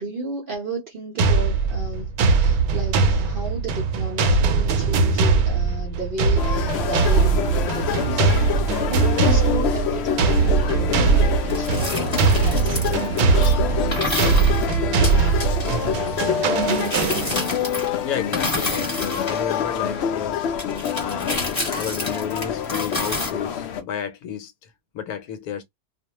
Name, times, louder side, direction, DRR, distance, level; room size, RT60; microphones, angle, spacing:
voice 1, 0.0-8.3 8.8-15.1, right 2 dB, 55° right, 0.6 m, -34 dB
sound 1, 1.2-17.6, right 4 dB, 80° right, 1.1 m, -21 dB
sound 2, 6.4-23.8, left 8 dB, 65° left, 0.6 m, -27 dB
sound 3, 11.5-13.5 13.9-15.9 16.6-18.0 18.3-20.0 20.6-23.3, left 1 dB, 20° left, 1.1 m, -30 dB
voice 2, 18.0-20.4 20.9-21.5 21.7-25.6, left 8 dB, 80° left, 1.1 m, -31 dB
2.5 x 2.1 x 2.8 m
omnidirectional pair, 1.6 m